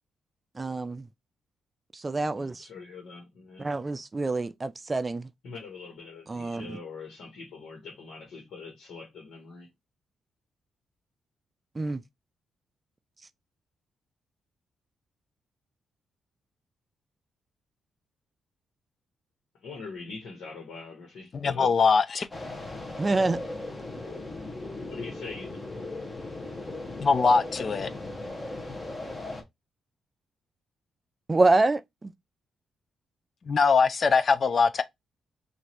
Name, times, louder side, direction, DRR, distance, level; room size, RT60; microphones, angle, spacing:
voice 1, 0.6-1.0 1.9-2.7 3.6-5.3 6.3-6.8 11.8-12.0 23.0-23.4 31.3-32.1, right 3 dB, 25° right, 0.4 m, -26 dB
voice 2, 2.3-3.7 5.4-9.7 19.5-21.7 24.9-25.7, left 4 dB, 80° left, 1.3 m, -43 dB
voice 3, 21.3-22.3 27.0-27.9 33.5-34.8, left 5 dB, 50° left, 0.5 m, -22 dB
sound 1, 22.3-29.4, left 2 dB, 20° left, 1.2 m, -37 dB
3.0 x 2.6 x 4.2 m
cardioid pair, 80°, 0 cm